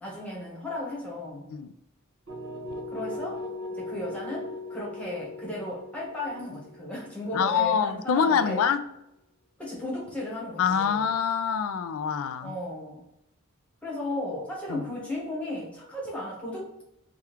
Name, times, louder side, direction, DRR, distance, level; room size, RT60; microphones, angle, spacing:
voice 1, 0.0-1.4 2.9-3.4 3.7-8.6 9.6-11.1 12.4-13.0 13.8-16.7, left 1 dB, 5° left, -5 dB, 1.1 m, -35 dB
sound 1, 2.3-8.1, left 2 dB, 75° right, 1.2 m, -39 dB
voice 2, 7.3-8.8 10.6-12.5 14.7-14.8, left 7 dB, 80° left, 12 dB, 0.3 m, -25 dB
3.5 x 2.3 x 4.4 m, 0.82 s
head